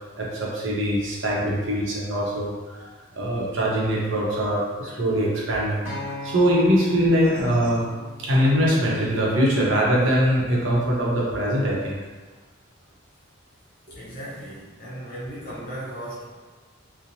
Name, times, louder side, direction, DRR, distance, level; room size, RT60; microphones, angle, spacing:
voice 1, 0.2-2.9 3.1-5.9 6.2-7.8 8.2-12.0, equal, 65° right, -5 dB, 0.7 m, -22 dB
Acoustic guitar, 5.8-10.1 10.9-11.0, left 1 dB, 10° right, 1.1 m, -39 dB
voice 2, 7.2-7.9 13.9-16.2, equal, 45° left, -8 dB, 0.5 m, -36 dB
2.9 x 2.0 x 2.6 m, 1.3 s
head